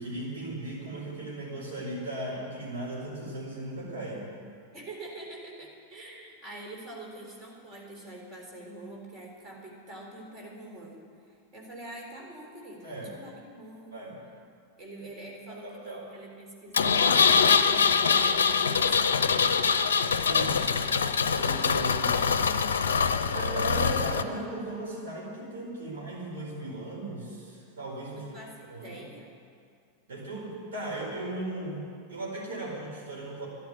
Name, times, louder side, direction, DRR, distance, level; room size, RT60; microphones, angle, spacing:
voice 1, 0.0-4.3 12.8-13.1 13.9-14.2 15.6-16.0 20.2-20.7 21.3-22.3 23.3-28.3 28.7-29.0 30.1-33.5, right 1 dB, 60° right, -3 dB, 5.0 m, -37 dB
voice 2, 4.7-11.0 11.5-13.9 14.8-19.4 28.1-29.3, right 1 dB, 30° right, -1 dB, 3.9 m, -45 dB
Engine, 16.7-24.2, left 6 dB, 65° left, 0.6 m, -24 dB
11.5 x 11.5 x 9.7 m, 2.2 s
figure-of-eight pair, 90°, 0 cm